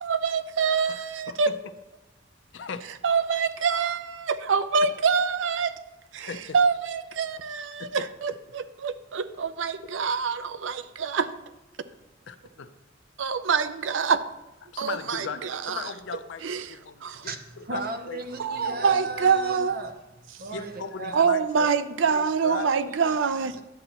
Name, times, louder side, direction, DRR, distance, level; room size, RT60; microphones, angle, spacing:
voice 1, 0.0-1.5 3.0-5.7 6.1-11.3 13.2-14.2 14.8-15.8 16.4-16.7 17.0-17.3 18.4-19.8 21.1-23.5, right 5 dB, 85° right, 12 dB, 0.5 m, -25 dB
voice 2, 1.3-1.6 2.5-2.8 6.2-6.6 7.8-8.1 12.3-12.7 14.7-18.2 18.6-18.8 20.5-21.7 22.1-22.7 23.0-23.1, left 5 dB, 75° left, 10 dB, 0.6 m, -37 dB
voice 3, 17.2-21.3 22.5-23.2 23.4-23.6, right 3 dB, 50° right, 7 dB, 0.8 m, -36 dB
10.5 x 7.9 x 2.9 m, 0.98 s
head